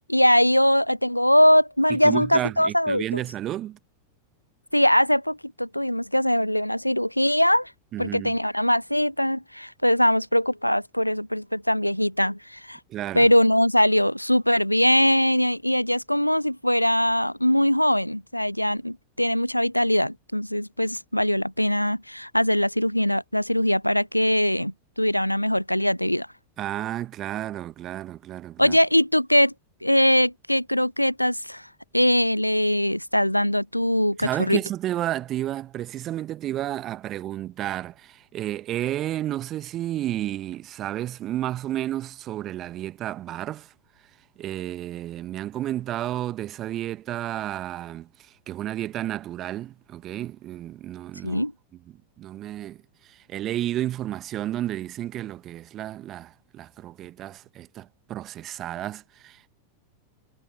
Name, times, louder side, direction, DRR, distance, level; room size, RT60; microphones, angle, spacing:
voice 1, 0.1-3.2 4.7-7.7 8.0-12.8 13.1-26.3 28.6-29.5 29.8-31.7 31.9-34.6 51.2-51.5, equal, 90° left, 0.5 m, -21 dB
voice 2, 1.9-3.8 7.9-8.3 12.9-13.3 26.6-28.8 34.2-43.7 44.4-48.1 48.5-51.4 52.2-52.8 53.1-59.5, right 13 dB, 30° right, 1.4 m, -31 dB
figure-of-eight pair, 90°, 0 cm